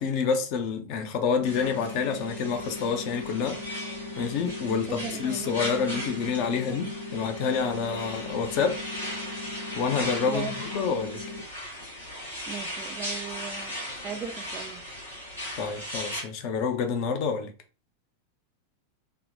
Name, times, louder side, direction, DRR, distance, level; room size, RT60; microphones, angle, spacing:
voice 1, 0.0-3.6 4.2-8.8 9.8-11.2 15.6-17.5, left 6 dB, 45° left, 0.5 m, -28 dB
sound 1, 1.4-16.2, equal, 85° left, 1.3 m, -38 dB
sound 2, 1.4-11.4, left 3 dB, 5° left, 0.7 m, -39 dB
voice 2, 4.7-6.1 10.2-10.6 12.5-13.7 14.0-14.8, right 7 dB, 25° right, 0.4 m, -38 dB
3.5 x 2.1 x 2.6 m
figure-of-eight pair, 90°, 0 cm